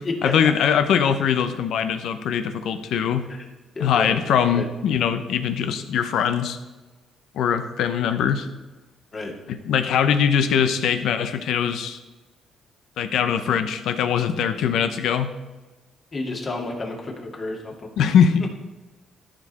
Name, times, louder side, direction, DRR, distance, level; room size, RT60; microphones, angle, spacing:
voice 1, 0.2-3.3 3.8-6.6 7.3-8.5 9.5-12.0 13.0-15.3 18.0-18.5, left 8 dB, 80° left, 9 dB, 0.8 m, -22 dB
voice 2, 3.8-4.2 4.5-4.7 9.1-9.3 16.1-17.9, left 2 dB, 40° left, 0 dB, 2.2 m, -30 dB
13.5 x 5.3 x 4.2 m, 1.2 s
cardioid pair, 90°, 0 cm